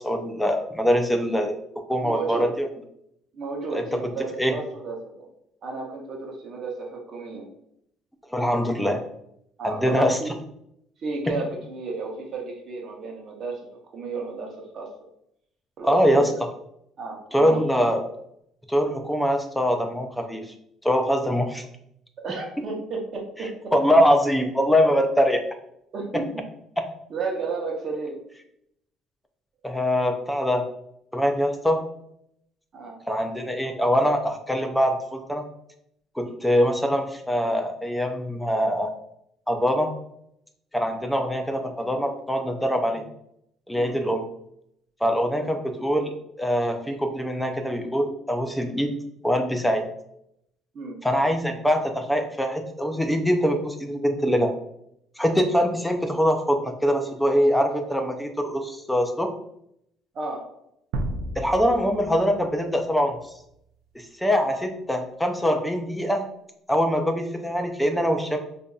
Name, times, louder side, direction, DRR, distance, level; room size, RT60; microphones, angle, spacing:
voice 1, 0.0-1.5 1.9-2.7 3.7-4.1 4.4-4.5 8.3-9.0 9.6-10.2 11.3-11.4 15.8-16.3 17.3-18.0 18.7-20.5 20.8-21.7 23.4-25.4 26.1-26.2 29.6-30.7 31.1-31.8 33.1-35.4 36.2-38.9 39.5-39.9 40.7-43.0 43.7-44.2 45.0-48.9 49.2-49.9 51.0-54.5 55.2-59.3 61.4-63.2 63.9-66.3 66.7-68.4, equal, 5° left, 4 dB, 0.4 m, -23 dB
voice 2, 2.0-2.5 3.3-5.3 5.6-7.5 9.6-10.3 11.0-13.6 13.9-14.9 15.8-16.2 17.0-17.6 22.2-23.7 25.9-26.3 27.1-28.2 32.7-33.0 43.7-43.9 45.4-45.5 50.7-51.0 60.1-60.5, right 4 dB, 40° right, 0 dB, 0.9 m, -32 dB
sound 1, 60.9-63.4, right 1 dB, 90° right, 0.4 m, -33 dB
5.0 x 2.6 x 2.3 m, 0.76 s
cardioid pair, 145°, 0 cm